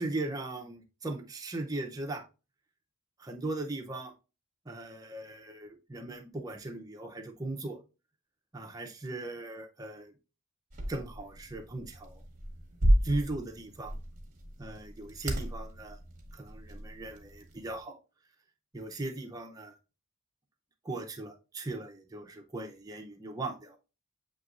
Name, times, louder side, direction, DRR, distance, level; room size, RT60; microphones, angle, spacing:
voice 1, 0.0-2.2 3.2-4.1 4.7-7.8 8.5-10.1 10.9-12.2 13.0-14.0 14.6-16.0 16.3-18.0 18.7-19.8 20.8-23.8, right 2 dB, 15° right, 2 dB, 0.6 m, -38 dB
sound 1, 10.7-17.8, equal, 35° right, 1.0 m, -33 dB
7.4 x 2.9 x 2.4 m, 0.31 s
head